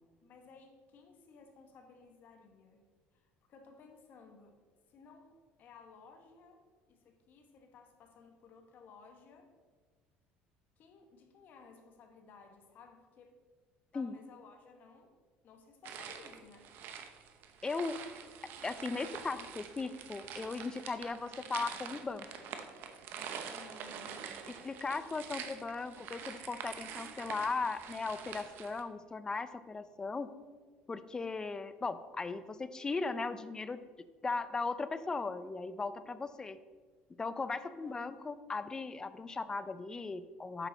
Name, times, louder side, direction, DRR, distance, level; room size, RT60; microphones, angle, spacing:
voice 1, 0.2-4.6 4.9-9.5 10.8-13.4 13.9-15.1 15.4-16.7 23.5-24.7 37.6-38.0, left 4 dB, 50° left, 4 dB, 1.3 m, -58 dB
sound 1, 15.8-28.8, right 7 dB, 60° right, 0.8 m, -46 dB
voice 2, 17.6-18.0 18.6-22.3 24.6-30.3 30.9-33.8 34.2-36.6 37.2-40.7, left 4 dB, 20° left, 13 dB, 0.4 m, -37 dB
8.9 x 6.3 x 4.0 m, 1.5 s
cardioid pair, 125°, 4 cm